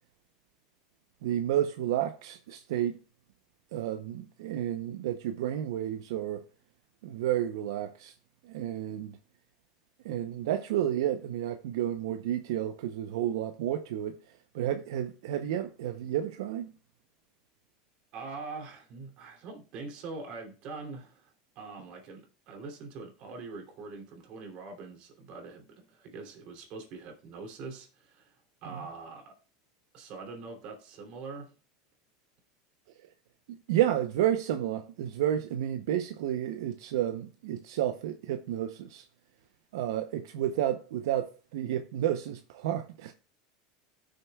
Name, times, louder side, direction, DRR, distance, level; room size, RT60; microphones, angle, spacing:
voice 1, 1.2-3.0 3.7-6.4 7.0-8.1 8.4-9.2 10.0-14.2 14.5-16.7 28.7-28.8 33.7-39.0 39.7-43.1, right 11 dB, 85° right, 0.7 m, -31 dB
voice 2, 18.1-28.3 28.6-29.3 29.9-31.5, right 4 dB, 50° right, 2.9 m, -43 dB
17.5 x 6.6 x 2.3 m
supercardioid pair, 140°, 2 cm